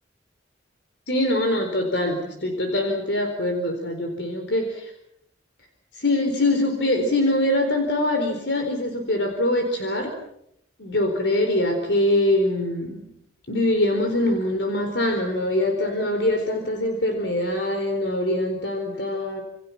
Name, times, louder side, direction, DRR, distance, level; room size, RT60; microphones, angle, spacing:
voice 1, 1.1-4.9 5.9-10.2 10.8-13.1 13.5-19.4, left 1 dB, 70° left, 4 dB, 4.3 m, -23 dB
28.5 x 28.5 x 6.1 m, 0.76 s
head